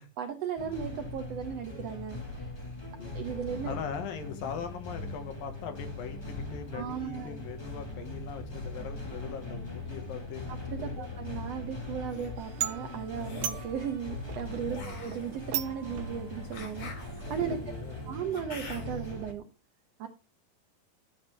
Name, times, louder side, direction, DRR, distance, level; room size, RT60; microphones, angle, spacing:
voice 1, 0.2-2.5 3.1-3.7 6.7-7.3 10.7-17.6 18.1-19.4 20.0-20.1, right 8 dB, 70° right, 6 dB, 1.5 m, -36 dB
sound 1, 0.6-19.3, left 2 dB, 25° left, 0.5 m, -40 dB
voice 2, 3.6-10.5 10.8-11.1 14.7-15.0 17.4-18.2, left 7 dB, 80° left, 7 dB, 3.3 m, -40 dB
sound 2, 11.8-12.3 13.2-13.7 14.7-19.1, left 3 dB, 60° left, 5.3 m, -47 dB
sound 3, 12.4-18.1, right 11 dB, 85° right, 2.5 m, -40 dB
12.0 x 8.6 x 3.4 m, 0.31 s
omnidirectional pair, 4.0 m